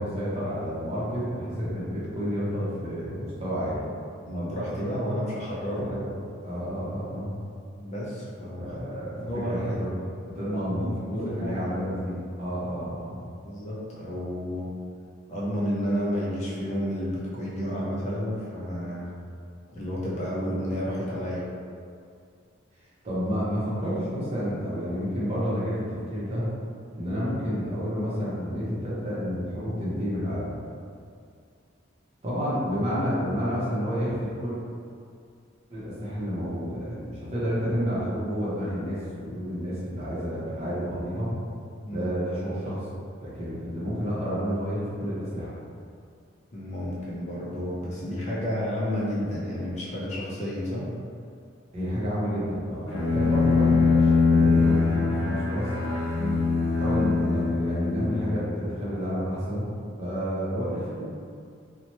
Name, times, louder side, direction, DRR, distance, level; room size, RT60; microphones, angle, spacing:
voice 1, 0.0-3.8 5.7-6.1 6.4-7.4 8.6-13.2 23.0-26.5 26.9-30.5 32.2-34.6 35.7-41.3 41.9-45.6 51.7-55.7 56.8-59.7 60.0-61.0, equal, 30° right, -9 dB, 0.7 m, -30 dB
voice 2, 4.2-5.9 7.8-8.8 9.2-9.7 10.5-11.7 13.4-14.7 15.3-19.1 19.7-21.5 41.8-42.1 46.5-50.9 56.2-56.4, equal, 35° left, -7 dB, 0.5 m, -31 dB
Bowed string instrument, 52.9-58.7, left 4 dB, 90° left, 0.5 m, -23 dB
2.8 x 2.1 x 2.9 m, 2.3 s
head